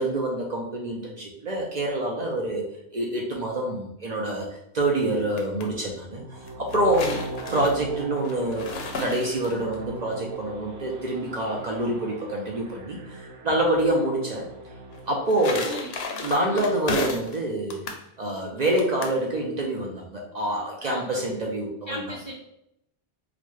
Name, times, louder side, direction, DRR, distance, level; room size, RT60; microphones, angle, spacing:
voice 1, 0.0-2.6 2.9-4.5 4.7-6.2 6.6-7.1 7.5-14.5 15.1-15.8 16.2-17.9 18.2-22.0, right 1 dB, 50° right, -1 dB, 0.6 m, -26 dB
sound 1, 5.1-5.7 6.5-9.8 14.9-17.4 17.7-18.0 18.8-19.2, left 4 dB, 75° left, 0.8 m, -34 dB
sound 2, 6.1-16.2, right 2 dB, 85° right, 0.9 m, -40 dB
voice 2, 15.6-16.7 20.8-21.4 21.9-22.3, left 1 dB, 35° left, -3 dB, 0.5 m, -37 dB
4.0 x 2.1 x 3.1 m, 0.80 s
omnidirectional pair, 1.1 m